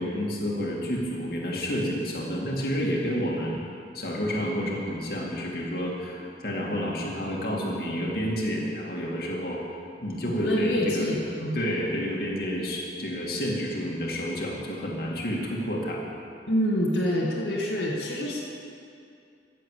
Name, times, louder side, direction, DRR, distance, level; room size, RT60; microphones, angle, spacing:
voice 1, 0.0-3.6 3.9-9.6 10.0-11.1 11.5-16.0, equal, 55° left, -3 dB, 2.4 m, -29 dB
voice 2, 10.4-11.6 16.5-18.4, equal, 80° left, -5 dB, 1.9 m, -26 dB
14.5 x 7.7 x 8.4 m, 2.5 s
head